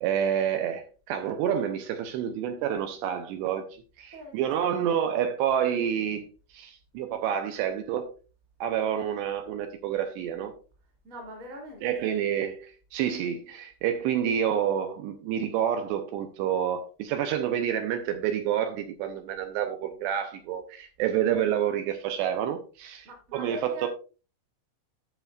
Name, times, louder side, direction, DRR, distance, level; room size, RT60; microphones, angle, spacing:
voice 1, 0.0-3.7 4.0-6.2 6.5-8.1 8.6-10.5 11.8-23.9, right 9 dB, 80° right, 2.7 m, -28 dB
voice 2, 11.0-12.2 23.0-23.9, equal, 25° right, 1.8 m, -42 dB
15.0 x 5.8 x 2.5 m
omnidirectional pair, 5.4 m